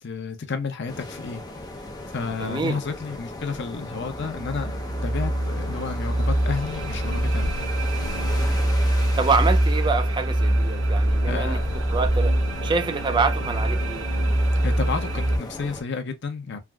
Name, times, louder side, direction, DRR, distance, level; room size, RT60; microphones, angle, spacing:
voice 1, 0.0-1.4 2.1-4.7 5.0-7.5 11.3-11.8 14.6-16.6, left 5 dB, 60° left, 0.7 m, -31 dB
sound 1, 0.9-15.8, left 2 dB, 20° left, 0.6 m, -38 dB
voice 2, 2.4-2.8 9.2-11.6 11.9-12.3 12.6-14.1, right 4 dB, 25° right, 0.4 m, -26 dB
sound 2, 4.0-15.4, right 1 dB, 90° right, 0.6 m, -24 dB
sound 3, 6.2-8.8 9.7-9.8 10.1-12.8, left 1 dB, 60° right, 1.5 m, -37 dB
3.3 x 2.5 x 2.2 m
head